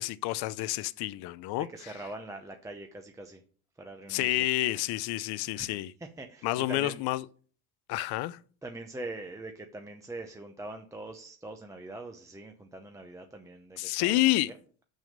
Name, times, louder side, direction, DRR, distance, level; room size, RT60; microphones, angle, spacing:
voice 1, 0.0-1.7 4.1-5.9 6.4-7.2 7.9-8.4 13.8-14.5, left 17 dB, 75° left, 0.6 m, -29 dB
voice 2, 1.5-3.4 3.8-4.5 5.5-5.7 6.0-7.0 8.6-14.2 14.5-14.6, right 2 dB, 10° right, 0.6 m, -43 dB
6.9 x 6.4 x 6.5 m
cardioid pair, 155°, 39 cm